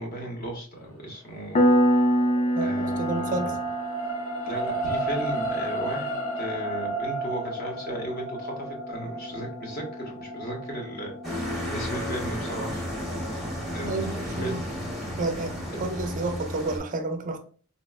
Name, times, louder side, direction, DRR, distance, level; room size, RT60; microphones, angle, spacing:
voice 1, 0.0-1.6 2.6-3.5 4.5-12.9 13.7-14.6, right 1 dB, 45° left, 1 dB, 0.8 m, -36 dB
Piano, 1.6-11.9, equal, 30° left, 0.4 m, -28 dB
sound 1, 1.8-14.3 14.8-14.9, right 2 dB, 85° left, 0.7 m, -33 dB
voice 2, 2.6-3.5 13.9-14.6 15.2-15.5 15.8-17.4, right 2 dB, 35° right, 7 dB, 0.4 m, -30 dB
sound 2, 11.2-16.8, equal, ahead, 0.8 m, -33 dB
3.9 x 2.0 x 2.2 m, 0.42 s
head